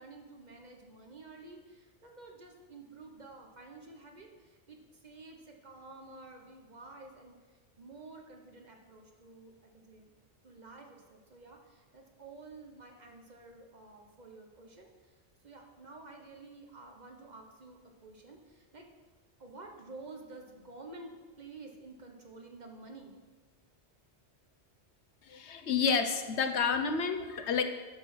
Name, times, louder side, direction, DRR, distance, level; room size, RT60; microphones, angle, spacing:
voice 1, 0.0-10.1 10.4-15.2 15.4-18.9 19.4-23.1, right 3 dB, 40° right, 2 dB, 1.3 m, -51 dB
voice 2, 25.2-27.6, left 6 dB, 90° left, 8 dB, 1.1 m, -30 dB
11.0 x 6.2 x 6.0 m, 1.3 s
omnidirectional pair, 1.1 m